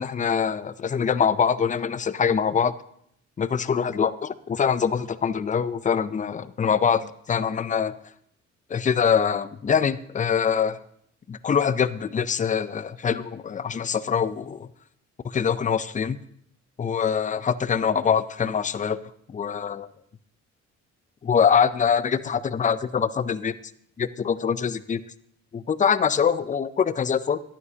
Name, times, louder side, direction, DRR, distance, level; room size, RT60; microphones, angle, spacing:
voice 1, 0.0-2.7 3.4-7.9 8.7-10.8 11.3-14.7 15.2-16.2 16.8-19.0 19.3-19.9 21.2-23.6 24.0-25.0 25.5-27.4, left 7 dB, 25° left, 15 dB, 0.5 m, -24 dB
14.5 x 11.0 x 2.8 m, 0.69 s
cardioid pair, 90°, 30 cm